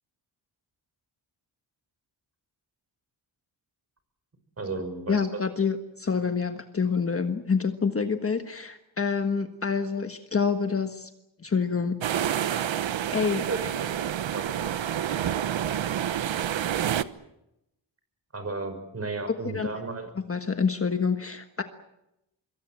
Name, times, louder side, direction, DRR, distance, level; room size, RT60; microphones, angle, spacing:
voice 1, 4.6-5.5 13.5-13.9 14.3-14.4 18.3-20.1, right 3 dB, 35° right, 8 dB, 5.7 m, -33 dB
voice 2, 5.1-11.1 11.4-12.0 12.4-12.7 13.1-13.4 19.5-19.7 20.3-21.6, left 5 dB, 30° left, 7 dB, 1.5 m, -27 dB
sound 1, 12.0-17.0, right 10 dB, 85° right, 1.1 m, -28 dB
26.0 x 23.0 x 7.6 m, 0.86 s
wide cardioid pair, 170°, 45 cm